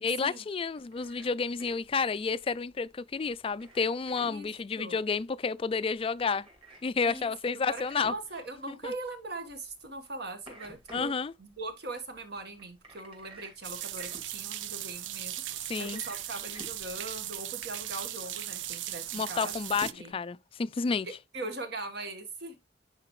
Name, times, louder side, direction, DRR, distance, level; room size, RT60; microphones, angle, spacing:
voice 1, 0.0-6.5 6.8-8.1 8.7-8.9 10.9-11.3 15.7-16.0 19.1-21.1, left 5 dB, 30° left, 0.3 m, -30 dB
sound 1, 0.6-20.1, right 1 dB, 30° right, 2.9 m, -53 dB
voice 2, 7.0-11.1 11.4-15.3 15.8-19.6 20.0-20.1 21.0-22.5, right 2 dB, 60° right, 1.5 m, -41 dB
sound 2, 13.6-19.9, right 13 dB, 80° right, 0.5 m, -38 dB
9.8 x 4.1 x 3.1 m
head